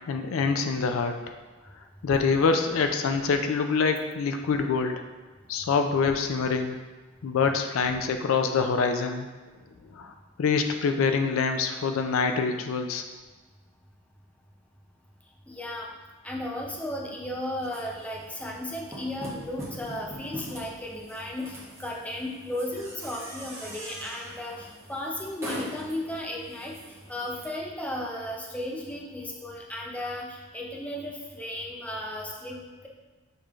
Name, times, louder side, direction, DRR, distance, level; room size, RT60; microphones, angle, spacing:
voice 1, 0.1-1.2 2.0-5.0 5.5-6.8 7.2-9.3 9.9-10.1 10.4-13.0, left 5 dB, 80° left, 6 dB, 0.4 m, -25 dB
voice 2, 15.5-15.9 16.2-26.7 27.1-32.9, left 1 dB, 5° left, -1 dB, 0.5 m, -35 dB
sound 1, 17.6-27.4, right 1 dB, 15° right, 0.9 m, -42 dB
6.7 x 3.1 x 2.4 m, 1.3 s
head